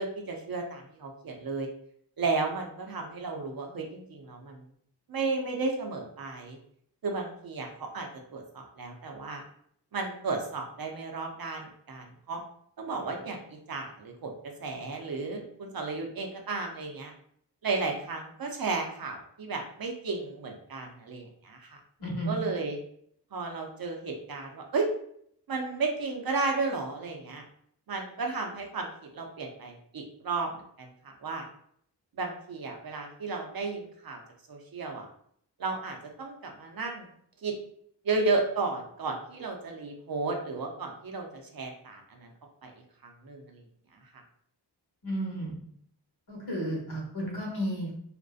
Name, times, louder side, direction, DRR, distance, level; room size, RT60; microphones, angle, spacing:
voice 1, 0.0-1.7 2.2-4.7 5.1-6.6 7.0-9.4 9.9-12.4 12.8-17.1 17.6-21.8 22.3-22.8 23.3-24.9 25.5-27.4 27.9-28.9 29.1-31.5 32.1-34.2 34.5-35.1 35.6-37.1 37.4-37.5 38.0-42.3 42.6-42.7 43.0-43.6 43.9-44.2, right 3 dB, 55° right, 2 dB, 0.6 m, -33 dB
voice 2, 22.0-22.4 45.0-45.6 46.3-47.9, equal, 60° left, -3 dB, 1.0 m, -33 dB
2.5 x 2.1 x 2.4 m, 0.66 s
cardioid pair, 50°, 43 cm